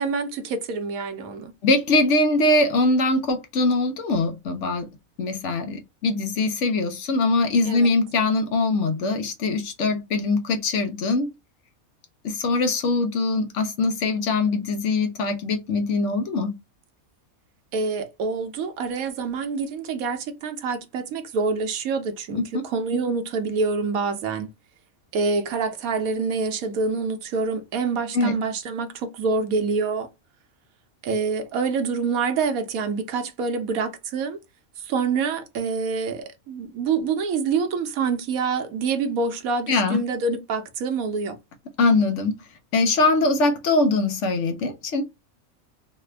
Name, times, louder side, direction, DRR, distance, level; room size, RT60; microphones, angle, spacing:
voice 1, 0.0-1.5 7.6-7.9 17.7-24.5 25.1-30.1 31.0-34.4 34.8-41.4, right 4 dB, 80° right, 1.1 m, -26 dB
voice 2, 1.6-4.9 5.2-11.3 12.2-16.5 22.3-22.4 28.1-28.3 39.7-40.0 41.8-42.3 42.7-45.0, left 2 dB, 65° left, 0.9 m, -22 dB
3.3 x 2.2 x 3.2 m
omnidirectional pair, 1.5 m